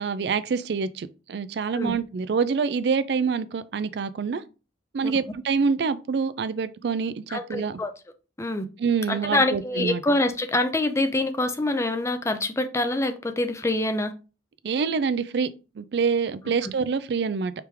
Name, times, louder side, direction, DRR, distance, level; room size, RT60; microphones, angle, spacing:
voice 1, 0.0-4.4 4.9-7.8 8.8-10.0 14.6-17.5, right 5 dB, 70° right, 0.4 m, -26 dB
voice 2, 7.3-7.9 8.4-8.7 9.1-14.1 16.6-16.7, left 2 dB, 15° left, 0.5 m, -25 dB
5.0 x 3.4 x 3.1 m
head